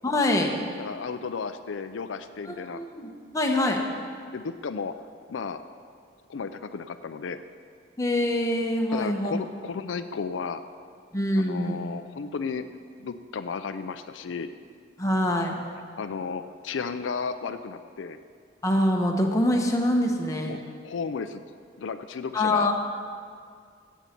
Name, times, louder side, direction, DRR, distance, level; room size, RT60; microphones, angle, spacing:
voice 1, 0.0-0.5 2.5-3.8 8.0-9.3 11.1-11.8 15.0-15.6 18.6-20.5 22.3-22.7, left 1 dB, 15° left, 1 dB, 1.0 m, -24 dB
voice 2, 0.8-2.8 4.3-4.9 5.3-5.6 6.3-7.4 8.9-10.6 11.3-12.6 13.0-14.5 16.0-18.2 20.4-20.6 20.8-21.4 21.8-22.7, left 5 dB, 80° left, 10 dB, 0.5 m, -33 dB
16.0 x 8.2 x 4.5 m, 2.2 s
head